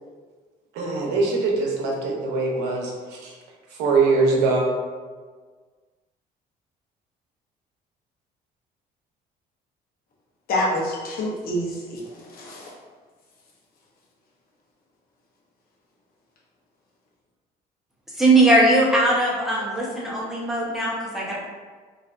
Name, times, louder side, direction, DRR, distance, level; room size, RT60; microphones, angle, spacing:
voice 1, 0.8-2.9 3.2-3.3 3.8-4.6, right 3 dB, 90° right, 0 dB, 0.6 m, -22 dB
voice 2, 10.5-12.7, left 1 dB, 60° left, -2 dB, 0.8 m, -27 dB
voice 3, 18.2-21.4, right 2 dB, ahead, -5 dB, 0.8 m, -19 dB
3.2 x 2.5 x 2.4 m, 1.5 s
cardioid pair, 110°, 17 cm